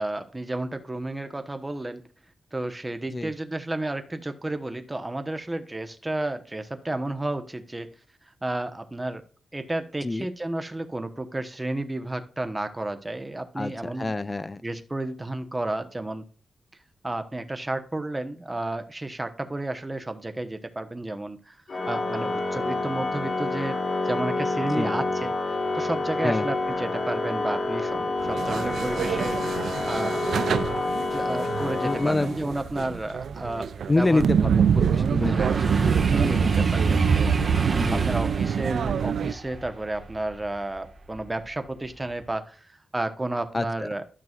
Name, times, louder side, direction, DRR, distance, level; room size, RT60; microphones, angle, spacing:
voice 1, 0.0-2.0 2.5-7.9 8.4-9.2 9.5-14.1 14.6-16.2 17.0-21.6 21.9-23.8 24.0-25.3 25.7-30.5 31.1-34.2 35.2-35.5 36.0-37.4 37.7-44.0, right 2 dB, 15° right, 7 dB, 1.0 m, -32 dB
voice 2, 13.6-14.6 24.7-25.0 26.2-26.5 31.8-32.5 33.9-35.9 37.8-38.1 43.5-43.9, left 2 dB, 20° left, 13 dB, 0.4 m, -27 dB
Organ, 21.7-32.6, left 2 dB, 50° left, 1.5 m, -28 dB
sound 1, 28.2-39.3, right 7 dB, 80° right, 0.3 m, -26 dB
sound 2, 32.4-41.4 41.8-42.2, right 4 dB, 40° right, 1.5 m, -28 dB
12.5 x 6.0 x 2.4 m, 0.40 s
wide cardioid pair, 130°, 0 cm